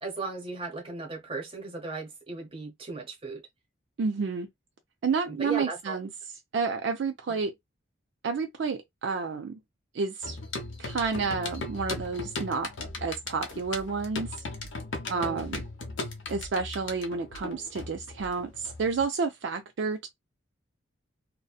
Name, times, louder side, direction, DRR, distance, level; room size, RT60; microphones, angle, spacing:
voice 1, 0.0-3.4 5.3-6.0 15.1-15.5, right 3 dB, 25° right, 0.8 m, -37 dB
voice 2, 4.0-4.5 5.0-6.1 6.5-7.5 8.2-9.6 9.9-10.4 10.8-12.7 13.0-14.3 15.1-15.6 16.3-20.1, right 5 dB, 65° right, 0.4 m, -30 dB
sound 1, 10.2-19.0, left 3 dB, 75° left, 0.7 m, -37 dB
2.6 x 2.1 x 2.3 m
head